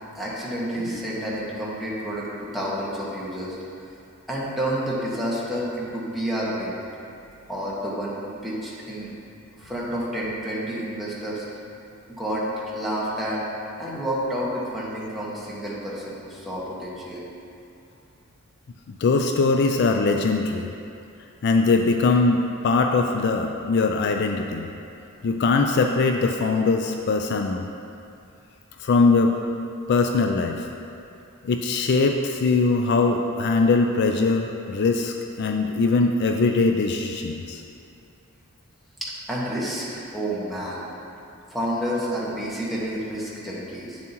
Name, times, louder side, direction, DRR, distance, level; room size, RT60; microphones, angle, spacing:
voice 1, 0.1-3.6 4.3-6.8 7.5-9.1 9.6-11.4 12.1-13.4 13.8-17.3 39.0-40.8 41.5-44.0, equal, ahead, -8 dB, 1.4 m, -29 dB
voice 2, 18.9-20.7 21.4-24.7 25.2-27.7 28.8-29.3 29.9-30.7 31.4-37.6, left 3 dB, 55° left, 4 dB, 0.4 m, -21 dB
8.7 x 7.2 x 3.0 m, 2.6 s
head